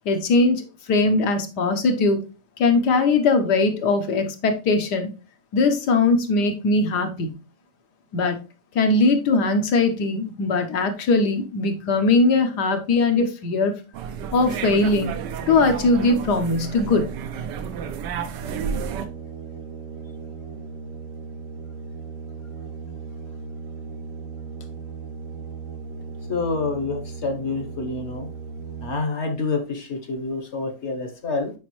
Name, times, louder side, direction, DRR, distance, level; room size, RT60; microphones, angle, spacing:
voice 1, 0.0-2.2 2.6-5.1 5.5-7.4 8.1-8.4 8.7-13.7 14.3-15.1 15.5-17.1, left 3 dB, 70° left, 6 dB, 1.5 m, -20 dB
sound 1, 13.9-19.1, right 7 dB, 75° right, 1.3 m, -31 dB
sound 2, 18.4-28.9, right 4 dB, 60° right, 0.8 m, -37 dB
voice 2, 26.3-28.3 28.8-31.5, left 3 dB, 45° left, 7 dB, 1.1 m, -27 dB
7.2 x 5.1 x 3.1 m, 0.32 s
omnidirectional pair, 1.9 m